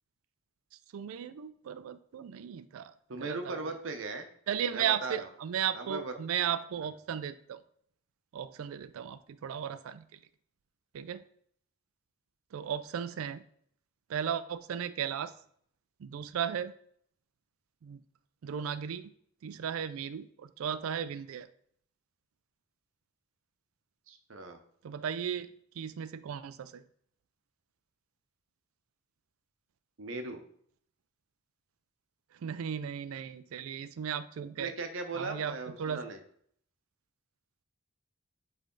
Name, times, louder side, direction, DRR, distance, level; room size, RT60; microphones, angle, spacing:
voice 1, 0.9-2.9 3.2-3.5 4.5-7.6 8.3-10.0 10.9-11.2 12.5-13.4 14.1-15.3 16.0-16.7 17.8-18.0 18.4-19.1 19.4-21.5 24.8-25.5 25.8-26.8 32.3-34.7 35.1-36.0, right 8 dB, 85° right, 14 dB, 0.4 m, -35 dB
voice 2, 3.1-4.3 4.7-5.3 5.7-6.1 24.1-24.6 30.0-30.4 34.6-36.2, right 3 dB, 70° right, 6 dB, 0.8 m, -38 dB
8.1 x 3.3 x 3.8 m, 0.63 s
head